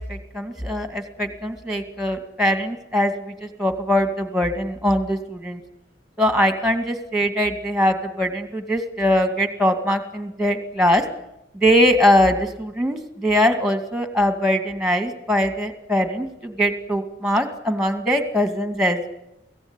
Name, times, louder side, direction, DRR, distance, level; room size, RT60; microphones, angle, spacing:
voice 1, 0.0-5.6 6.2-11.0 11.5-19.1, equal, ahead, 6 dB, 2.3 m, -21 dB
23.5 x 16.5 x 9.9 m, 0.85 s
head